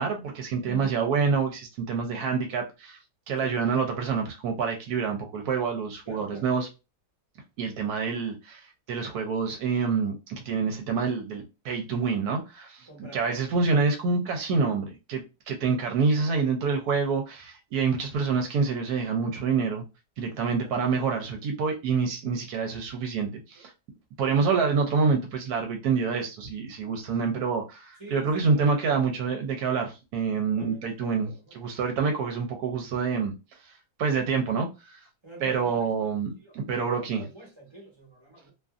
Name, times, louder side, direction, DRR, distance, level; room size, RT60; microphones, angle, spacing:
voice 1, 0.0-3.0 3.3-6.7 7.6-19.8 20.2-23.7 24.2-31.3 31.5-33.3 33.6-33.7 34.0-35.0 35.4-37.2, right 5 dB, 80° right, 1.1 m, -27 dB
voice 2, 0.6-1.1 3.4-3.6 6.0-6.5 12.9-13.5 20.3-20.7 28.0-28.7 30.5-31.6 35.2-36.1 36.4-38.5, right 1 dB, 20° right, 0.9 m, -47 dB
2.6 x 2.5 x 2.4 m
omnidirectional pair, 1.6 m